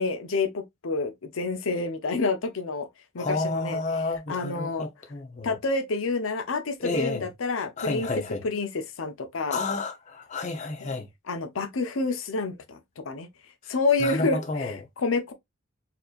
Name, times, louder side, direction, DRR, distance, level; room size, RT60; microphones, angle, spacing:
voice 1, 0.0-2.9 3.1-3.8 4.3-4.9 5.4-8.1 8.4-9.6 10.8-10.9 11.3-13.3 13.7-15.3, left 3 dB, 85° left, 0.7 m, -28 dB
voice 2, 3.2-5.6 6.8-7.3 7.8-8.4 9.5-11.1 13.6-13.7 14.0-14.8, left 3 dB, 35° left, 0.7 m, -30 dB
4.2 x 2.8 x 2.4 m
head